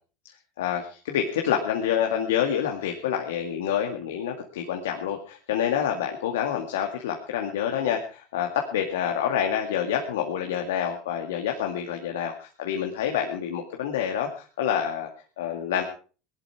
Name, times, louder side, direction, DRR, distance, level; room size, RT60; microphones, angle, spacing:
voice 1, 0.6-15.1 15.4-15.8, left 9 dB, 85° left, 3 dB, 2.1 m, -27 dB
18.5 x 12.0 x 4.9 m, 0.38 s
supercardioid pair, 100°, 0 cm